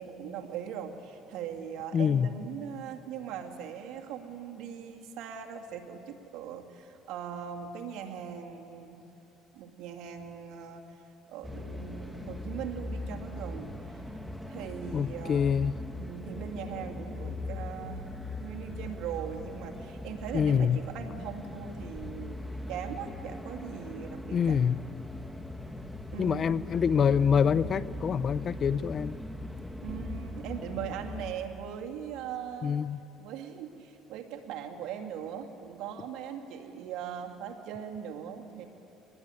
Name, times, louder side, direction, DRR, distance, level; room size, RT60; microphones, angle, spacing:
voice 1, 0.0-9.0 9.5-10.8 11.3-13.7 14.5-15.5 16.0-18.1 18.4-22.4 22.7-24.6 26.1-26.6 29.8-32.8 33.2-38.7, right 8 dB, 75° right, 4 dB, 2.4 m, -40 dB
voice 2, 1.9-2.3 14.9-15.8 20.3-20.8 24.3-24.7 26.2-29.2 32.6-33.0, left 7 dB, 45° left, 18 dB, 0.5 m, -26 dB
sound 1, 11.4-31.3, left 1 dB, 5° left, 1.9 m, -40 dB
24.0 x 20.5 x 9.9 m, 2.9 s
cardioid pair, 100°, 0 cm